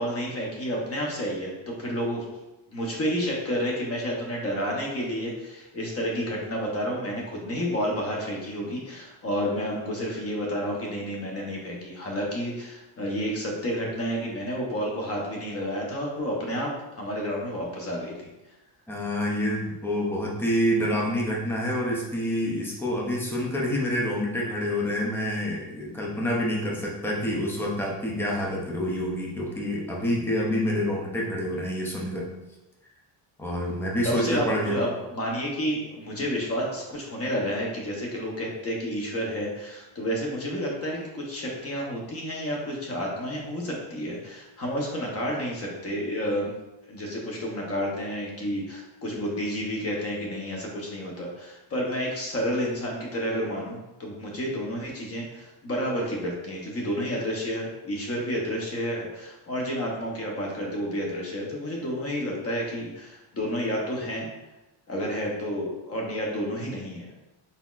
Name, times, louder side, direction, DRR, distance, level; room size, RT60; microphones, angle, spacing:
voice 1, 0.0-2.2 2.7-18.1 34.0-46.5 46.9-64.3 64.9-67.1, equal, 30° left, -1 dB, 0.7 m, -30 dB
voice 2, 18.9-32.3 33.4-34.8, equal, 5° left, -3 dB, 0.3 m, -27 dB
4.1 x 4.0 x 2.3 m, 1.0 s
cardioid pair, 180°, 50 cm